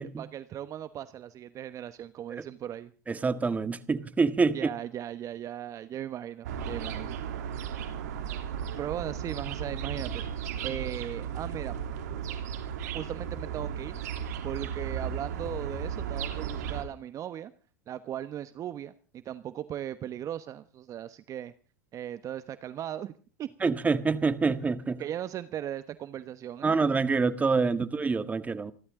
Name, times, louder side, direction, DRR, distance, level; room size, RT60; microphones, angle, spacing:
voice 1, 0.0-2.9 4.5-7.2 8.8-10.2 10.6-11.8 12.9-14.0 14.4-17.5 17.9-21.5 21.9-23.1 23.4-23.7 25.0-26.8, right 11 dB, 40° right, 1.1 m, -38 dB
voice 2, 3.1-4.6 23.6-25.0 26.6-28.7, right 4 dB, 15° right, 1.7 m, -26 dB
sound 1, 6.4-16.8, right 8 dB, 75° right, 3.3 m, -35 dB
28.0 x 12.5 x 3.8 m
hypercardioid pair, 100°, 9 cm